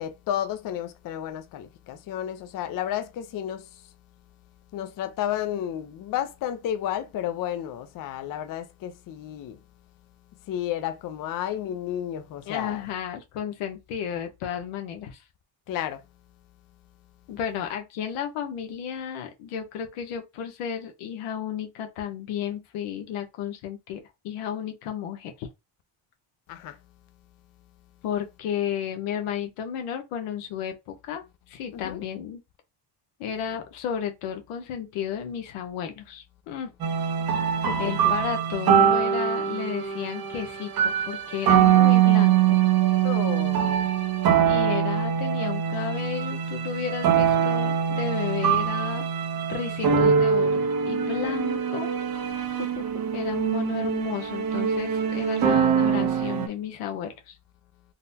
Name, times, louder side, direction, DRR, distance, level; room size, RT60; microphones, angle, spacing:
voice 1, 0.0-3.8 4.7-9.6 10.5-12.9 15.7-16.0 26.5-26.8 31.7-32.1 37.7-38.1 43.0-43.9 51.2-51.4 52.6-52.9, left 11 dB, 45° left, 0.5 m, -32 dB
voice 2, 12.5-15.2 17.3-25.5 28.0-32.4 33.2-36.7 37.8-42.6 44.4-49.1 49.5-51.9 53.1-57.4, left 8 dB, 90° left, 0.9 m, -33 dB
sound 1, 36.8-56.5, right 8 dB, 45° right, 0.7 m, -23 dB
3.9 x 2.1 x 2.7 m
cardioid pair, 115°, 50 cm